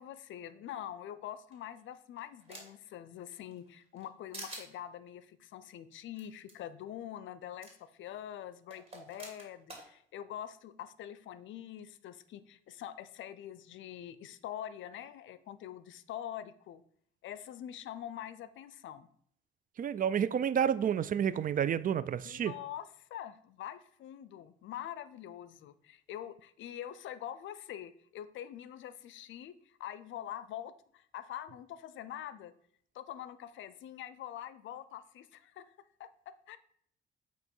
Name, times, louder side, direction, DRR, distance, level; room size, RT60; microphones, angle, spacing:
voice 1, 0.0-16.8 17.2-19.1 22.2-32.5 32.9-35.7 36.0-36.6, left 11 dB, 75° left, 0.5 m, -45 dB
sound 1, 1.5-2.9 3.3-4.1 4.3-4.7 6.2-6.3 6.5-6.6 7.6-7.7 8.7-9.9, right 2 dB, 30° right, 2.4 m, -47 dB
voice 2, 19.8-22.5, right 8 dB, 45° right, 0.4 m, -30 dB
8.3 x 3.0 x 5.3 m
cardioid pair, 90°, 20 cm